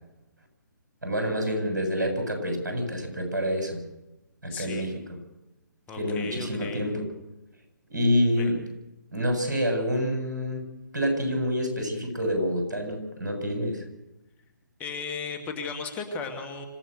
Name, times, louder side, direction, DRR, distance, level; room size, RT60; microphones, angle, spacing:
voice 1, 1.0-3.8 4.4-4.9 6.0-7.0 7.9-8.6 9.1-10.7 10.9-13.8, equal, 70° right, 4 dB, 7.6 m, -27 dB
voice 2, 4.5-4.9 5.9-6.8 8.4-8.5 14.8-16.7, left 4 dB, 15° left, 6 dB, 2.1 m, -35 dB
26.0 x 16.0 x 6.7 m, 0.97 s
figure-of-eight pair, 140°, 11 cm